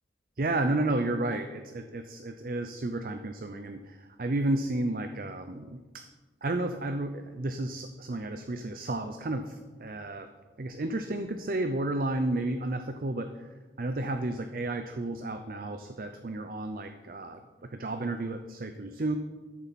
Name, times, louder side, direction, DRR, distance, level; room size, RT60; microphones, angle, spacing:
voice 1, 0.4-5.8 6.4-10.3 10.6-13.4 13.8-17.4 17.8-19.2, right 2 dB, 50° right, 7 dB, 0.5 m, -32 dB
13.5 x 6.9 x 4.2 m, 1.3 s
head